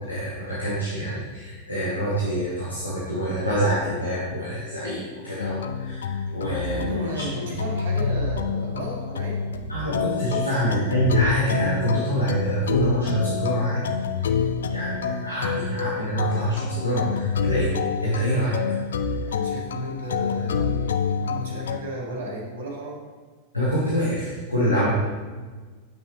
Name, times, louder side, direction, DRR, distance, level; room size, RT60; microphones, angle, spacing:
voice 1, 0.0-7.6 9.7-13.9 14.2-14.4 14.7-17.8 18.0-18.6 23.5-24.9, equal, 85° left, -7 dB, 1.3 m, -26 dB
sound 1, 5.4-21.8, left 6 dB, 65° left, 0.4 m, -27 dB
voice 2, 6.7-10.5 19.2-23.0, right 1 dB, 60° right, -2 dB, 1.8 m, -35 dB
8.8 x 5.7 x 3.1 m, 1.4 s
figure-of-eight pair, 90°, 0 cm